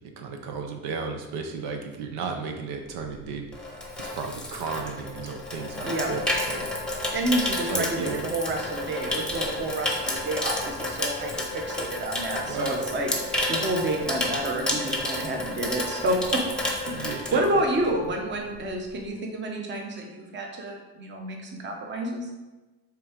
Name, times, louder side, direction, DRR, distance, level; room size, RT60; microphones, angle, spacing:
voice 1, 0.0-3.5 4.0-6.7 7.7-8.2 12.4-12.9 16.9-17.6, right 4 dB, 80° right, 4 dB, 1.0 m, -34 dB
Water tap faucet / Sink (filling or washing), 3.0-18.0 18.3-18.6, left 1 dB, ahead, 0.9 m, -31 dB
voice 2, 7.1-13.1 13.5-16.4 16.9-22.3, right 1 dB, 30° right, 1 dB, 0.9 m, -29 dB
6.1 x 3.7 x 5.1 m, 1.1 s
cardioid pair, 160°, 38 cm